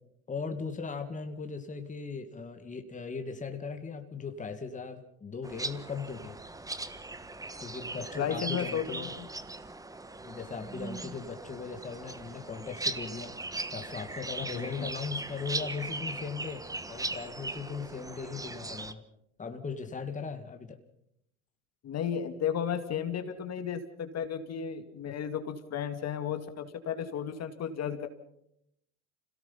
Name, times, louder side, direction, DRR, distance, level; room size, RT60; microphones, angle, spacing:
voice 1, 0.3-6.4 7.6-9.1 10.2-19.0 19.4-20.8, left 5 dB, 20° left, 6 dB, 2.1 m, -38 dB
sound 1, 5.4-18.9, right 2 dB, 10° right, 1.2 m, -39 dB
voice 2, 8.2-9.3 14.5-14.9 21.8-28.1, left 8 dB, 45° left, 8 dB, 2.2 m, -34 dB
27.0 x 17.5 x 5.7 m, 0.74 s
hypercardioid pair, 85°, 37 cm